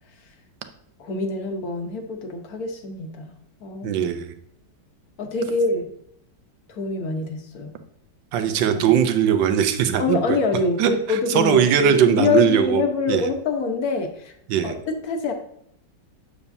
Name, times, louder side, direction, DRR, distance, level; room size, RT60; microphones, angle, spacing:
voice 1, 1.0-3.3 3.6-4.0 5.2-5.9 6.7-7.7 8.7-9.0 10.0-14.3 14.6-15.3, left 4 dB, 60° left, 4 dB, 1.4 m, -25 dB
voice 2, 3.8-4.3 8.3-10.2 10.8-12.8 13.1-13.3 14.5-14.8, right 9 dB, 85° right, 8 dB, 1.4 m, -20 dB
8.3 x 6.9 x 2.7 m, 0.71 s
omnidirectional pair, 1.9 m